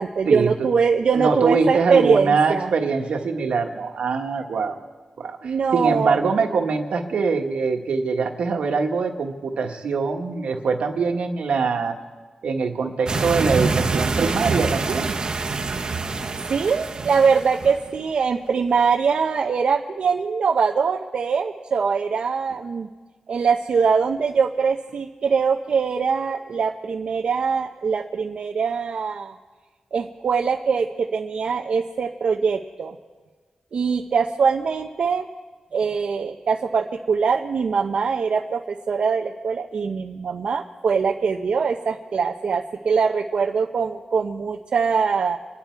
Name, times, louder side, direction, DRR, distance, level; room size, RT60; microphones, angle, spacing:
voice 1, 0.0-2.7 5.4-6.2 16.5-22.9 23.3-29.4 29.9-33.0 33.7-35.3 35.7-45.4, right 5 dB, 60° right, 2 dB, 0.7 m, -22 dB
voice 2, 1.1-4.8 5.2-12.0 12.4-15.2, right 4 dB, 80° right, 4 dB, 1.5 m, -23 dB
sound 1, 13.1-17.9, right 4 dB, 45° right, 1.1 m, -25 dB
26.0 x 10.5 x 4.6 m, 1.4 s
wide cardioid pair, 145°, 2 cm